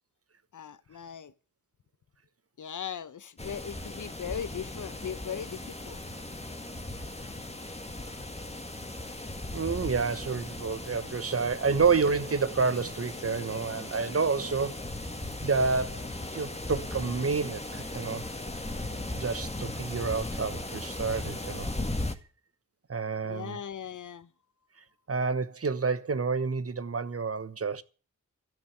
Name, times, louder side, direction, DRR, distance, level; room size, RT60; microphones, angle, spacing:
voice 1, 0.5-1.3 2.6-6.0 23.2-24.3, left 8 dB, 70° left, 1.0 m, -39 dB
sound 1, 3.4-22.1, left 2 dB, 20° left, 1.9 m, -37 dB
voice 2, 9.5-14.8 15.4-18.2 19.1-21.7 22.9-23.6 25.1-27.8, right 5 dB, 45° right, 1.2 m, -29 dB
13.5 x 6.6 x 9.7 m
cardioid pair, 40°, 32 cm